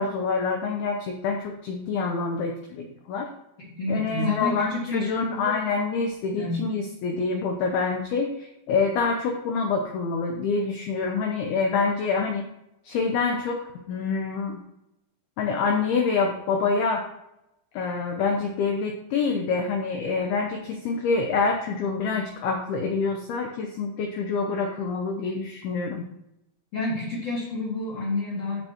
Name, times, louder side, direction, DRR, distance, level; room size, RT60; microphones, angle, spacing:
voice 1, 0.0-3.3 3.9-12.4 12.8-14.6 15.4-17.1 17.7-26.0, left 4 dB, 90° left, 2 dB, 2.2 m, -26 dB
voice 2, 3.7-5.6 6.4-6.7 26.7-28.6, left 2 dB, 55° left, -5 dB, 1.8 m, -29 dB
13.0 x 5.5 x 3.0 m, 0.86 s
omnidirectional pair, 5.7 m